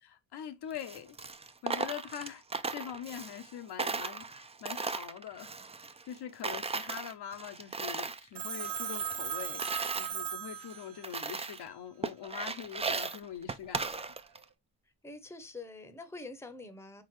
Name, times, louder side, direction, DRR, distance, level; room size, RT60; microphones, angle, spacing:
voice 1, 0.0-1.2 1.6-2.4 2.7-5.6 6.1-14.1, left 9 dB, 70° left, 0.8 m, -43 dB
Coin (dropping), 0.7-3.5 3.8-6.2 6.4-8.2 8.6-10.1 10.6-10.7 11.0-11.7 12.0-14.4, right 4 dB, 15° right, 0.4 m, -37 dB
Telephone, 8.4-11.2, right 8 dB, 50° right, 0.7 m, -37 dB
voice 2, 15.0-17.0, left 2 dB, 5° left, 0.8 m, -45 dB
4.1 x 3.8 x 3.0 m
cardioid pair, 70°, 42 cm